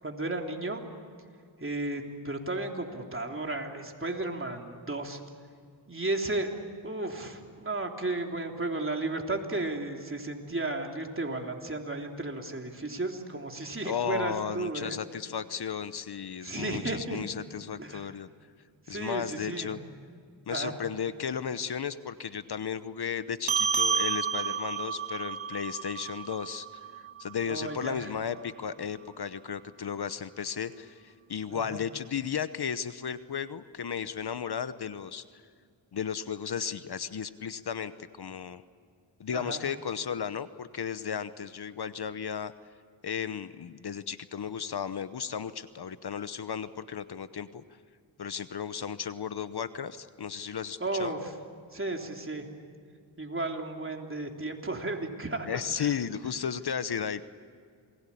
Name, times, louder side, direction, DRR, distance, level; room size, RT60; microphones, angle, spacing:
voice 1, 0.0-0.8 1.6-5.2 5.9-6.5 6.8-15.0 16.4-17.2 17.8-18.0 18.9-19.8 20.5-20.7 27.5-28.1 31.5-31.8 39.3-39.6 50.8-51.3 51.7-52.5 53.2-55.9, right 2 dB, 30° right, 2 dB, 3.5 m, -34 dB
voice 2, 13.8-18.3 18.9-19.8 20.5-26.7 27.0-35.4 35.9-37.9 38.2-38.6 39.2-42.5 43.0-47.6 48.2-51.1 55.5-57.2, left 7 dB, 60° left, 13 dB, 1.0 m, -34 dB
sound 1, 23.5-28.3, right 6 dB, 85° right, 1.4 m, -31 dB
28.0 x 21.0 x 8.6 m, 2.1 s
cardioid pair, 60°, 45 cm